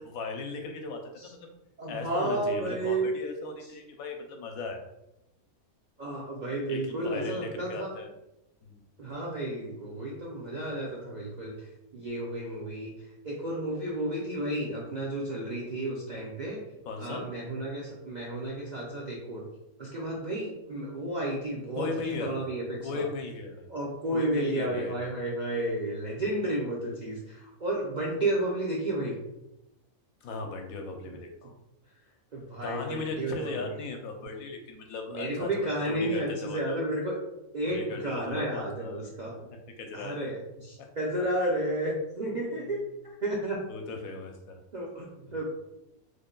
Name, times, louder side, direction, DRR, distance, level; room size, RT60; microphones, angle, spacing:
voice 1, 0.0-1.5 1.9-4.8 6.7-8.1 8.6-8.8 16.9-17.2 21.8-22.4 22.8-23.7 24.1-24.9 30.2-31.5 32.6-36.8 37.6-39.1 39.8-40.3 40.8-40.9 42.6-42.8 43.7-44.6, left 3 dB, 75° left, 4 dB, 1.0 m, -37 dB
voice 2, 1.8-3.1 6.0-7.9 9.0-12.9 13.2-16.6 17.0-19.5 19.8-23.0 23.7-29.1 32.3-33.7 35.1-37.2 37.5-39.5 39.9-42.8 43.2-43.6 44.7-45.4, right 1 dB, 60° right, -4 dB, 0.4 m, -32 dB
3.4 x 2.2 x 3.7 m, 0.90 s
omnidirectional pair, 1.5 m